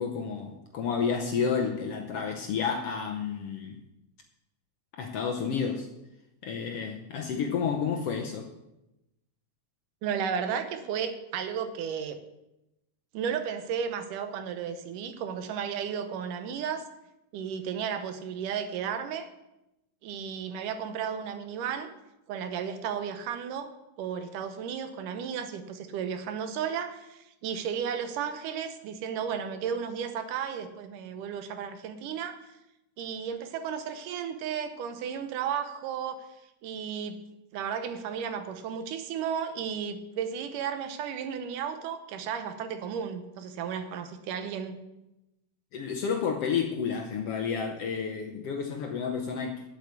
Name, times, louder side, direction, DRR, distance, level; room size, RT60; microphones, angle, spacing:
voice 1, 0.0-3.8 5.0-5.9 6.4-8.5 45.7-49.6, left 6 dB, 70° left, 3 dB, 1.5 m, -30 dB
voice 2, 10.0-12.2 13.1-16.8 17.3-19.3 20.0-21.9 22.3-23.7 24.0-32.5 33.0-36.3 36.6-37.2 37.5-44.9, right 7 dB, 85° right, 9 dB, 2.5 m, -34 dB
8.3 x 8.1 x 8.3 m, 0.93 s
omnidirectional pair, 3.6 m